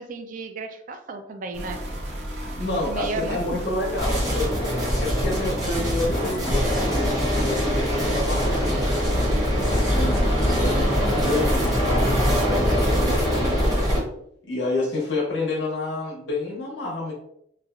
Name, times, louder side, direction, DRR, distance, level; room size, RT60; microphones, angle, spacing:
voice 1, 0.0-1.8 2.9-3.6, right 3 dB, 45° right, 7 dB, 0.3 m, -33 dB
sound 1, 1.5-12.9, equal, 65° right, 0.7 m, -34 dB
voice 2, 2.5-9.1 9.7-13.7 14.4-17.1, left 2 dB, 75° left, -4 dB, 0.9 m, -29 dB
sound 2, 4.0-14.0, equal, 20° right, 0.9 m, -23 dB
Tools / Wood, 5.7-5.8 6.0-6.6 7.1-7.4 8.2-8.8 9.4-10.2 11.0-11.8, left 1 dB, 25° left, 0.4 m, -36 dB
3.2 x 2.3 x 2.4 m, 0.72 s
head